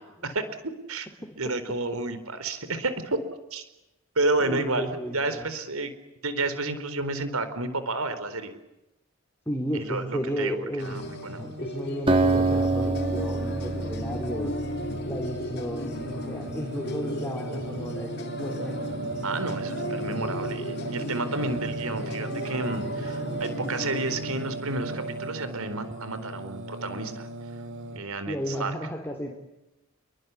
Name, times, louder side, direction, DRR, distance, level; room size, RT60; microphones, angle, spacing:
voice 1, 0.0-1.1 1.4-3.2 3.5-3.6 4.2-5.9 6.2-8.5 9.7-11.4 19.2-27.3 27.9-28.7, right 2 dB, 80° right, 12 dB, 4.4 m, -31 dB
voice 2, 1.2-1.5 4.4-5.5 9.4-11.0 11.4-14.6 15.1-18.8 28.3-29.4, equal, 10° left, 2 dB, 3.4 m, -34 dB
sound 1, 10.8-24.3, left 1 dB, 50° left, 3.2 m, -37 dB
Singing, 10.8-28.0, right 1 dB, 55° right, 4.7 m, -36 dB
Acoustic guitar, 12.1-15.6, right 3 dB, 25° right, 2.8 m, -26 dB
28.5 x 24.0 x 8.5 m, 0.95 s
head